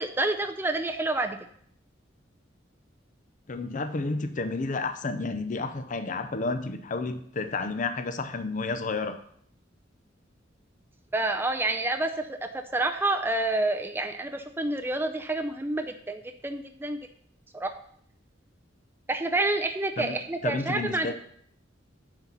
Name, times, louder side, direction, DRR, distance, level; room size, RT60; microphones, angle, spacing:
voice 1, 0.0-1.4 11.1-12.4 12.7-17.0 17.5-17.7 19.1-21.1, right 2 dB, 10° right, 5 dB, 0.5 m, -28 dB
voice 2, 3.5-9.2 20.0-20.2 20.4-21.1, left 3 dB, 45° left, 9 dB, 0.6 m, -31 dB
9.5 x 4.0 x 6.0 m, 0.65 s
head